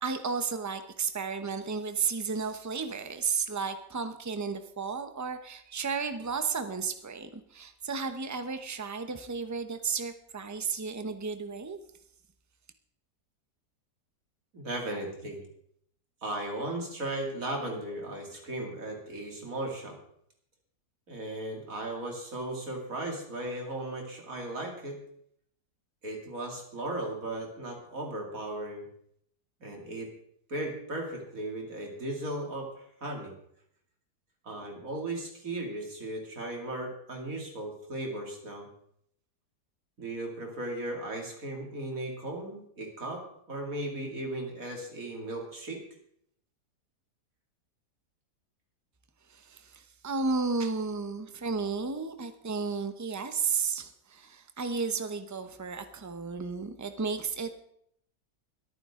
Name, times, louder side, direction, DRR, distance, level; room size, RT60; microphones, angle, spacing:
voice 1, 0.0-11.8 49.3-57.5, right 5 dB, 20° right, 9 dB, 0.4 m, -33 dB
voice 2, 14.5-15.4 16.2-19.9 21.1-25.0 26.0-28.8 29.6-30.1 30.5-33.3 34.4-38.7 40.0-45.8, right 1 dB, 55° right, 1 dB, 3.1 m, -36 dB
21.5 x 9.4 x 3.7 m, 0.70 s
omnidirectional pair, 1.8 m